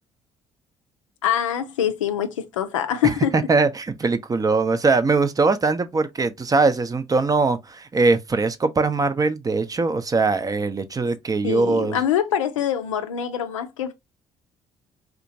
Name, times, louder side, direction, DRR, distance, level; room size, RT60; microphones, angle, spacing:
voice 1, 1.2-3.3 11.4-13.9, left 9 dB, 75° left, 0.4 m, -24 dB
voice 2, 3.0-12.0, right 3 dB, 20° right, 0.5 m, -21 dB
3.5 x 2.9 x 2.6 m
figure-of-eight pair, 45°, 16 cm